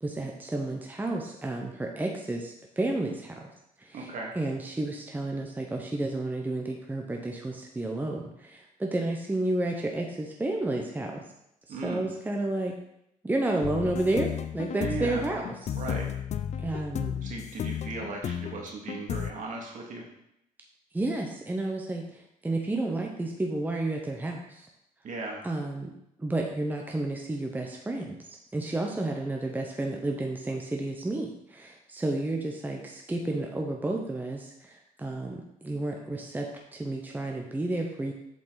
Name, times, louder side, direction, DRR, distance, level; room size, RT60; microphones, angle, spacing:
voice 1, 0.0-3.5 3.8-11.2 11.7-12.7 13.2-15.4 16.6-17.2 20.9-24.7 25.4-25.9 26.2-28.2 28.5-38.1, right 2 dB, 10° right, 1 dB, 0.9 m, -31 dB
voice 2, 3.9-4.3 11.7-12.1 14.8-15.2 15.7-16.1 17.2-20.0 25.0-25.4, right 3 dB, 60° right, -1 dB, 2.1 m, -37 dB
sound 1, 13.6-19.3, left 9 dB, 50° left, 0.5 m, -34 dB
7.5 x 5.1 x 4.0 m, 0.80 s
cardioid pair, 95°, 15 cm